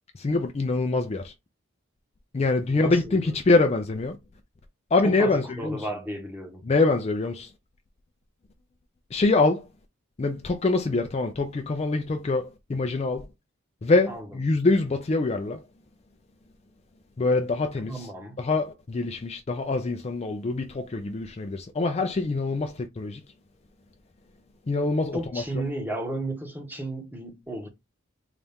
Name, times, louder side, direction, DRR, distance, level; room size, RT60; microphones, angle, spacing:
voice 1, 0.1-1.3 2.3-4.2 4.9-5.8 6.7-7.5 9.1-9.7 10.2-13.3 13.8-15.6 17.2-18.1 18.4-23.2 24.7-25.4, left 3 dB, 30° left, 0.4 m, -24 dB
voice 2, 2.7-3.4 5.0-6.6 14.1-14.4 17.9-18.4 25.1-27.7, right 1 dB, 10° right, 1.0 m, -34 dB
4.1 x 2.4 x 3.4 m
head